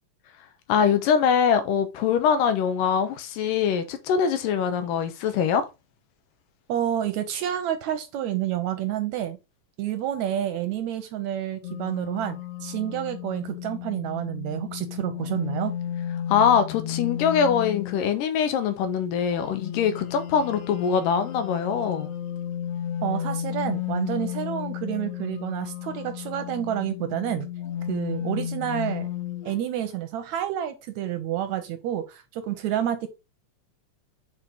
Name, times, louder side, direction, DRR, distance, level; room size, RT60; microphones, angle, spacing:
voice 1, 0.7-5.7 16.3-22.1, left 7 dB, 85° left, 2.7 m, -23 dB
voice 2, 6.7-9.4 9.8-15.7 23.0-27.5 27.9-29.1 29.5-33.1, right 11 dB, 75° right, 1.8 m, -29 dB
sound 1, 11.6-18.2 19.3-29.6, left 10 dB, 65° left, 1.7 m, -33 dB
7.3 x 4.5 x 3.8 m
omnidirectional pair, 3.7 m